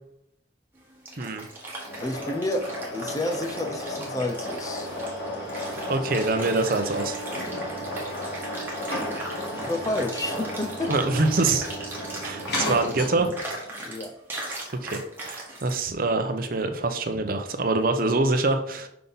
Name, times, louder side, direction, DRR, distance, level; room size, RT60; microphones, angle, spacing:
sound 1, 0.8-15.8, right 1 dB, 10° right, 1.5 m, -39 dB
sound 2, 1.8-13.5, left 1 dB, 55° left, 1.6 m, -33 dB
voice 1, 2.0-4.9 9.6-10.9 12.5-12.6 13.7-14.2, left 1 dB, 20° left, 7 dB, 0.5 m, -30 dB
voice 2, 5.9-7.2 10.9-11.6 12.2-13.3 14.8-18.9, right 3 dB, 50° right, 7 dB, 0.7 m, -25 dB
5.7 x 5.3 x 4.0 m, 0.77 s
head